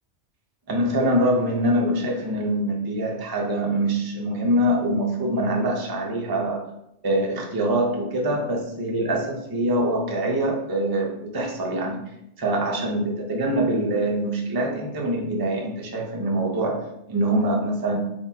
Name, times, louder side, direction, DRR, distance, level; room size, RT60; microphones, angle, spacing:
voice 1, 0.7-6.6 7.0-12.0 12.4-18.0, right 1 dB, 30° right, 0 dB, 0.4 m, -24 dB
3.8 x 2.7 x 2.7 m, 0.81 s
omnidirectional pair, 1.2 m